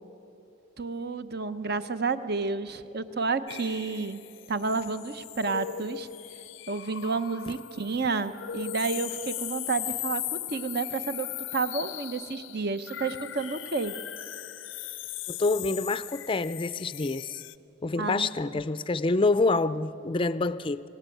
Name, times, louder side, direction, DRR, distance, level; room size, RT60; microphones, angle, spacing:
voice 1, 0.8-4.2 4.5-6.1 6.7-10.2 10.5-13.9 18.0-18.3, right 4 dB, 55° right, 0.9 m, -30 dB
sound 1, 3.5-17.5, left 12 dB, 75° left, 0.6 m, -38 dB
voice 2, 15.3-17.4 17.8-20.8, left 3 dB, 25° left, 0.5 m, -27 dB
26.0 x 18.5 x 9.2 m
head